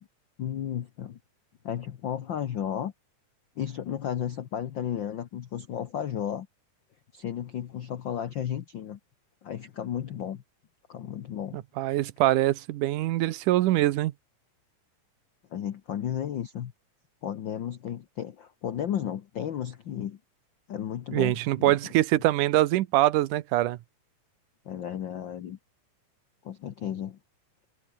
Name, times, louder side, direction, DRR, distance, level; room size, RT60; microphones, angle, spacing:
voice 1, 0.4-1.2 1.6-2.9 3.6-6.5 7.1-9.0 9.4-10.4 10.9-11.6 15.5-16.7 17.2-20.2 20.7-21.8 24.6-25.6 26.4-27.2, left 9 dB, 75° left, 1.0 m, -33 dB
voice 2, 11.8-14.1 21.1-23.8, right 15 dB, 80° right, 2.4 m, -24 dB
omnidirectional pair, 3.6 m